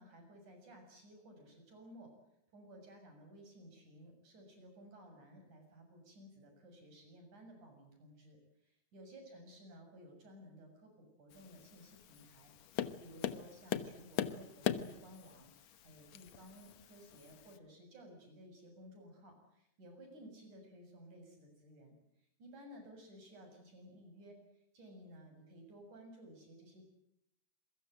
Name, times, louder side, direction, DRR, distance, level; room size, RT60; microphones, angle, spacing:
voice 1, 0.0-2.1 2.5-26.8, equal, 90° right, 4 dB, 8.5 m, -56 dB
Tap, 11.3-17.6, left 10 dB, 70° left, 2.3 m, -42 dB
27.5 x 23.0 x 7.9 m, 0.79 s
omnidirectional pair, 3.4 m